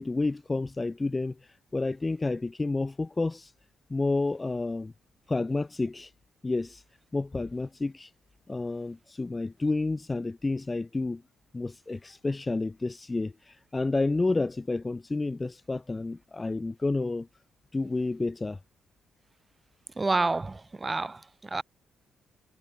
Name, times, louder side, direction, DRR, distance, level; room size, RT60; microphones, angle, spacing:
voice 1, 0.0-3.5 3.9-4.9 5.3-6.1 6.4-6.8 7.1-8.1 8.5-11.2 11.5-17.3 17.7-18.6, left 3 dB, 20° left, 1.4 m, -30 dB
voice 2, 20.0-21.6, right 3 dB, 20° right, 6.3 m, -29 dB
cardioid pair, 90°, 0 cm